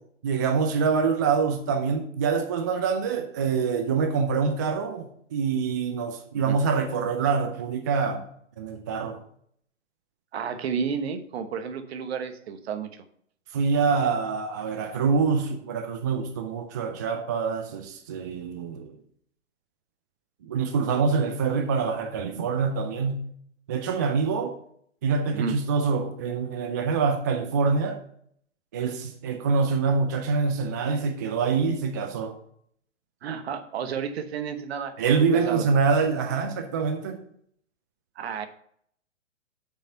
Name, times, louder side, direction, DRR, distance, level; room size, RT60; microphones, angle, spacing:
voice 1, 0.2-8.2 8.6-9.2 13.5-18.9 20.4-23.2 23.7-24.5 25.0-28.0 28.7-32.3 35.0-37.2, right 5 dB, 15° right, 6 dB, 0.3 m, -25 dB
voice 2, 10.3-13.0 25.3-25.6 33.2-34.9 35.3-35.6 38.2-38.5, right 6 dB, 55° right, 9 dB, 1.2 m, -31 dB
6.8 x 5.8 x 5.4 m, 0.66 s
hypercardioid pair, 125°, 37 cm